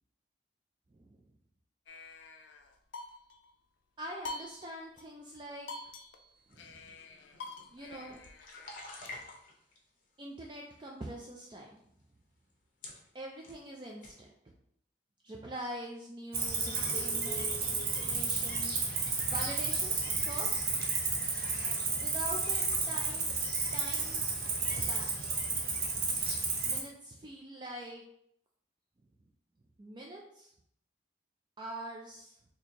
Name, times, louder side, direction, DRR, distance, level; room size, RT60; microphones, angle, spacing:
voice 1, 0.9-1.2 4.0-5.7 6.5-7.0 7.7-8.2 9.0-9.1 10.2-11.8 13.1-14.5 15.2-20.7 21.9-23.3 23.7-24.3 24.7-25.8 26.6-28.0 29.2-29.3 29.8-30.5 31.6-32.4, right 1 dB, 25° right, 0 dB, 0.3 m, -44 dB
sound 1, 1.9-3.5 4.2-5.0 5.3-5.4 5.7-9.1, left 2 dB, 80° left, 0.4 m, -46 dB
sound 2, 6.5-9.8 10.4-11.0 11.8-11.9 12.5-12.6 12.8-13.6 14.0-14.2, left 2 dB, 45° left, 0.7 m, -49 dB
Cricket, 16.3-26.8, right 4 dB, 50° right, 0.7 m, -32 dB
4.2 x 2.8 x 2.8 m, 0.71 s
head